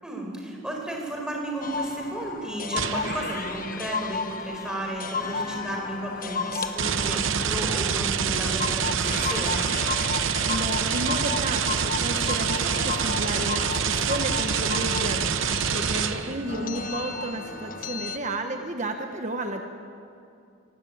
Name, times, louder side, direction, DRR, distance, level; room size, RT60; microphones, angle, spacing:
voice 1, 0.0-9.7, right 1 dB, 5° right, 0 dB, 4.6 m, -33 dB
sound 1, 1.6-18.2, left 4 dB, 40° left, 1.2 m, -33 dB
sound 2, 2.8-3.7 6.8-16.5, right 7 dB, 60° right, 0.9 m, -26 dB
voice 2, 10.5-19.6, right 1 dB, 35° right, 4 dB, 1.3 m, -32 dB
25.5 x 19.0 x 8.8 m, 2.5 s
head